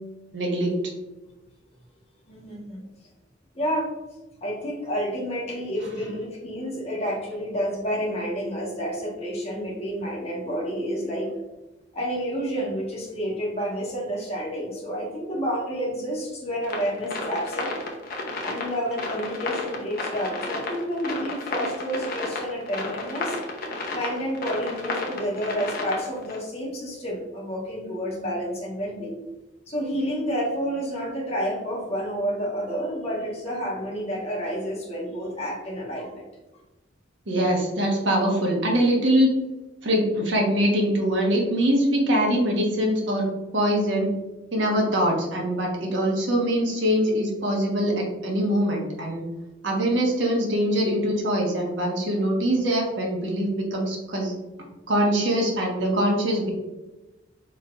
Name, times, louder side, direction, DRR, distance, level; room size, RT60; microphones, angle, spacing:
voice 1, 0.3-0.7 37.3-39.3 39.8-43.3 43.5-44.1 44.5-49.2 49.6-54.3 54.9-56.5, equal, 75° right, 0 dB, 1.3 m, -23 dB
voice 2, 2.3-2.9 3.5-3.9 4.4-11.3 11.9-17.8 18.4-23.4 23.9-29.2 29.7-36.2, equal, 35° left, -3 dB, 1.4 m, -29 dB
sound 1, 16.6-26.4, left 3 dB, 50° left, 0.9 m, -32 dB
4.6 x 4.3 x 2.5 m, 1.1 s
head